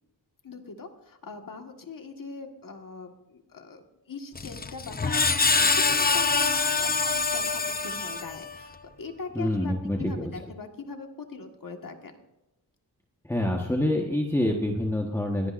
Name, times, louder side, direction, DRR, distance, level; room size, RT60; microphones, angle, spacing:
voice 1, 0.4-12.2, left 4 dB, 55° left, 4 dB, 1.8 m, -41 dB
Screech, 4.3-8.6, left 4 dB, 25° left, 0.6 m, -25 dB
voice 2, 9.3-10.3 13.3-15.5, left 1 dB, 5° left, 0 dB, 1.4 m, -26 dB
22.0 x 17.0 x 2.6 m, 0.94 s
wide cardioid pair, 100°, 40 cm